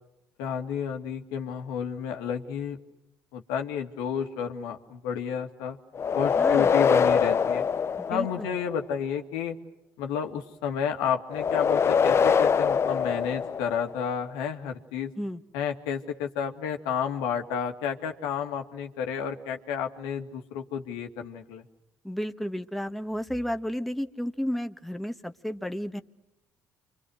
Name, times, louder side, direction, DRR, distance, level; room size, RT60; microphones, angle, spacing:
voice 1, 0.4-2.8 3.3-5.8 6.1-7.7 8.1-9.6 10.0-15.1 15.5-21.6, left 7 dB, 85° left, 5 dB, 2.3 m, -31 dB
sound 1, 5.9-8.7 11.3-14.0, left 6 dB, 40° left, 0.9 m, -24 dB
voice 2, 6.4-6.7 8.0-8.5 15.2-15.4 22.0-26.0, equal, ahead, 7 dB, 1.5 m, -32 dB
29.5 x 25.5 x 6.5 m, 0.89 s
supercardioid pair, 70°, 7 cm